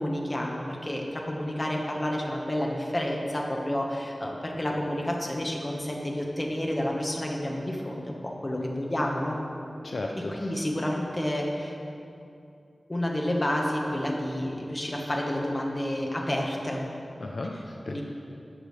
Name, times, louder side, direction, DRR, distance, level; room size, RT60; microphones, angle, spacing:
voice 1, 0.0-9.4 10.4-11.8 12.9-16.8 17.9-18.0, left 1 dB, 30° left, -1 dB, 1.3 m, -30 dB
voice 2, 9.8-10.6 17.2-18.0, left 2 dB, 65° left, 1 dB, 0.6 m, -35 dB
13.5 x 7.3 x 3.3 m, 2.6 s
wide cardioid pair, 85°, 0 cm